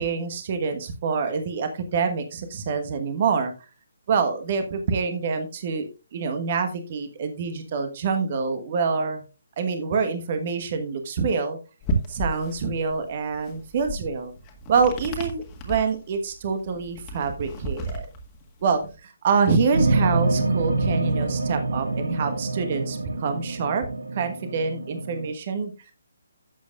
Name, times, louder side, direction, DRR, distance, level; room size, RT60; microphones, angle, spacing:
voice 1, 0.0-3.5 4.1-9.2 9.6-11.6 12.1-14.3 14.7-18.1 18.6-23.8 24.1-25.7, right 5 dB, 35° right, 8 dB, 1.3 m, -26 dB
sound 1, 11.8-18.9, right 1 dB, 20° left, 1.8 m, -33 dB
sound 2, 19.7-25.3, right 2 dB, 65° right, 1.0 m, -26 dB
12.5 x 8.3 x 2.4 m, 0.30 s
figure-of-eight pair, 140°, 0 cm